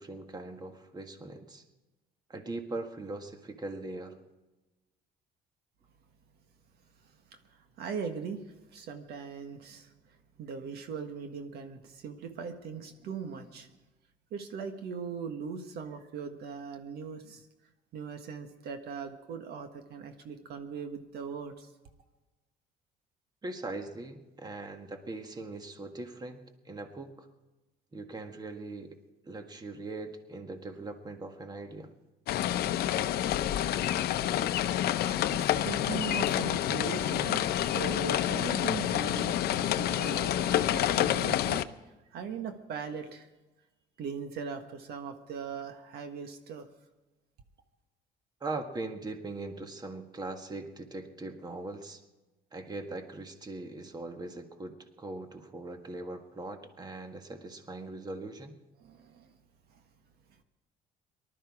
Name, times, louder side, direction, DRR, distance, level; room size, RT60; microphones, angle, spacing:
voice 1, 0.0-1.6 2.3-4.2 23.4-27.3 27.9-29.0 29.2-31.9 48.4-52.0 52.5-58.5, right 2 dB, 25° right, 6 dB, 1.7 m, -40 dB
voice 2, 7.3-8.4 8.7-13.7 14.3-17.5 17.9-21.7 34.4-41.6 42.1-43.3 44.0-46.7 58.8-59.3 59.7-59.8, right 6 dB, 70° right, 7 dB, 1.5 m, -40 dB
sound 1, 32.3-41.6, left 12 dB, 70° left, 0.7 m, -28 dB
19.0 x 12.5 x 4.9 m, 1.1 s
cardioid pair, 110°, 17 cm